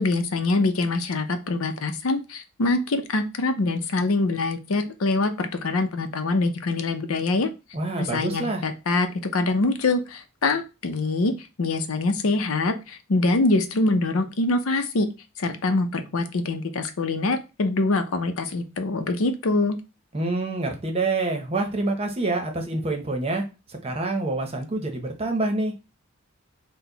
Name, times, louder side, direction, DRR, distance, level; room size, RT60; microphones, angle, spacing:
voice 1, 0.0-7.5 8.0-11.3 11.6-15.1 15.4-19.8, left 2 dB, 85° left, 8 dB, 0.6 m, -24 dB
voice 2, 7.7-8.6 20.1-23.4 23.7-25.7, right 2 dB, 30° right, 4 dB, 0.8 m, -26 dB
4.4 x 2.2 x 3.9 m, 0.28 s
head